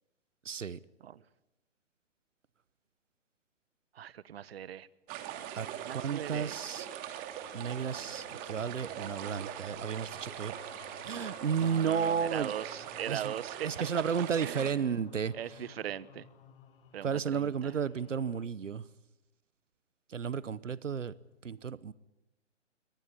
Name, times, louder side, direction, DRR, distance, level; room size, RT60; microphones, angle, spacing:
voice 1, 0.4-0.8 5.6-5.7 5.9-6.9 7.5-10.5 11.0-12.5 13.1-13.3 13.6-15.3 17.0-18.8 20.1-21.1 21.4-21.9, right 7 dB, 85° right, 1.0 m, -33 dB
voice 2, 3.9-4.9 5.8-6.5 11.6-13.7 14.4-14.8 15.3-16.3 16.9-17.7, right 10 dB, 55° right, 1.1 m, -40 dB
sound 1, 5.1-14.7, right 11 dB, 25° right, 2.3 m, -42 dB
sound 2, 7.1-18.5, left 7 dB, 45° left, 2.4 m, -57 dB
23.5 x 18.5 x 9.9 m
hypercardioid pair, 140°, 37 cm